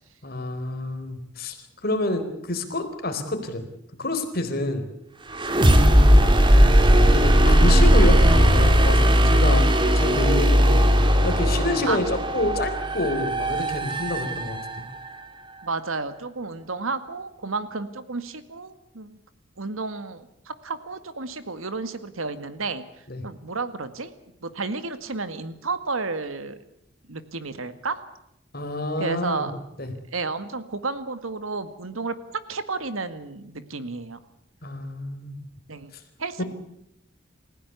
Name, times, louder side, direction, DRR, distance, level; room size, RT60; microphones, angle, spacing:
voice 1, 0.2-1.6 1.8-3.6 4.0-4.9 7.1-10.9 11.2-14.9 23.1-23.2 28.5-29.5 29.8-29.9 34.6-35.4, left 1 dB, 50° left, 7 dB, 4.1 m, -28 dB
sound 1, 5.3-15.1, equal, 25° right, 2.2 m, -18 dB
voice 2, 15.6-19.2 19.6-22.8 23.2-24.1 24.4-26.6 27.1-28.0 29.0-29.5 30.1-32.2 32.5-34.2 35.7-35.9 36.2-36.4, right 3 dB, 90° right, 11 dB, 1.9 m, -31 dB
29.0 x 16.0 x 8.3 m, 0.79 s
head